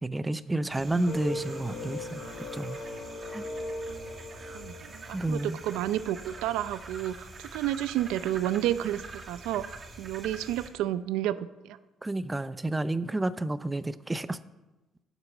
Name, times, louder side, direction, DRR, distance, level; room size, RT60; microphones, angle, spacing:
voice 1, 0.0-2.8 3.3-3.5 5.1-5.6 12.0-14.4, right 2 dB, 15° right, 14 dB, 0.6 m, -30 dB
sound 1, 0.7-10.7, right 3 dB, 40° right, 2.1 m, -45 dB
sound 2, 1.1-6.2, left 2 dB, 60° left, 2.8 m, -39 dB
voice 2, 4.5-11.8, right 12 dB, 90° right, 14 dB, 0.5 m, -31 dB
12.5 x 8.2 x 8.5 m, 1.1 s
cardioid pair, 100°, 0 cm